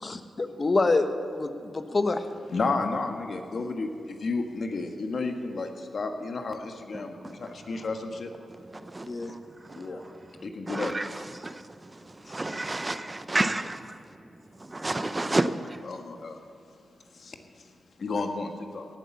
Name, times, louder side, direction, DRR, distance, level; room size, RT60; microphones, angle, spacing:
voice 1, 0.0-1.1 1.3-2.2 9.1-9.3, left 3 dB, 40° left, 1.2 m, -26 dB
voice 2, 2.5-8.3 9.7-10.0 10.4-11.2 15.8-16.4 17.1-17.7 18.0-18.9, left 3 dB, 65° left, 1.4 m, -32 dB
voice 3, 10.7-11.1 11.4-11.5 12.3-13.8 14.7-15.5, right 2 dB, 30° right, 0.7 m, -28 dB
17.5 x 7.7 x 7.1 m
cardioid pair, 55°, 0 cm